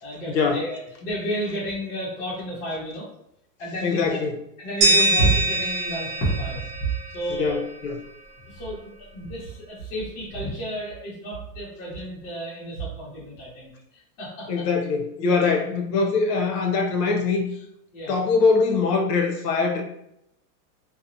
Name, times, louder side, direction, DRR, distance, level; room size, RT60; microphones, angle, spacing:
voice 1, 0.0-3.1 3.6-4.2 4.6-6.7 7.1-7.6 8.4-8.8 9.1-14.6 17.9-18.2, right 1 dB, 50° left, -7 dB, 1.0 m, -30 dB
voice 2, 3.8-4.4 7.3-8.0 14.5-17.4 18.1-19.8, left 4 dB, 85° left, 3 dB, 0.7 m, -22 dB
sound 1, 4.8-7.7, right 1 dB, 40° right, 0.7 m, -24 dB
2.7 x 2.0 x 2.6 m, 0.80 s
supercardioid pair, 170°, 48 cm